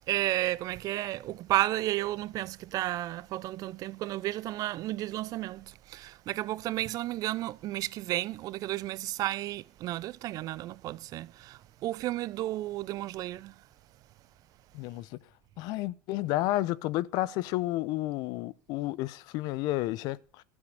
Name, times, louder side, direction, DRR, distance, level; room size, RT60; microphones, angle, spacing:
voice 1, 0.1-13.5, right 15 dB, 55° right, 0.6 m, -32 dB
voice 2, 14.7-15.2 15.6-20.4, left 16 dB, 65° left, 0.7 m, -31 dB
12.5 x 7.6 x 8.4 m
hypercardioid pair, 85°, 8 cm